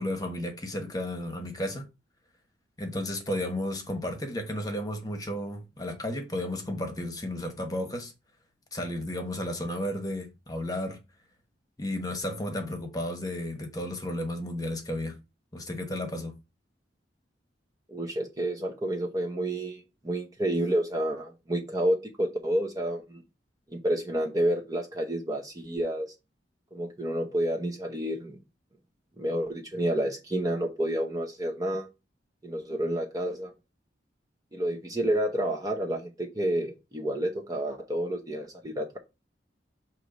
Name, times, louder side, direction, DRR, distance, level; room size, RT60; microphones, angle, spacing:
voice 1, 0.0-1.9 2.8-8.1 8.7-11.0 11.8-15.2 15.5-16.3, left 1 dB, 20° left, 1.2 m, -33 dB
voice 2, 17.9-23.2 23.7-26.1 26.7-28.4 29.2-31.9 32.4-33.5 34.5-39.0, right 1 dB, 20° right, 0.8 m, -29 dB
6.4 x 3.1 x 5.1 m
head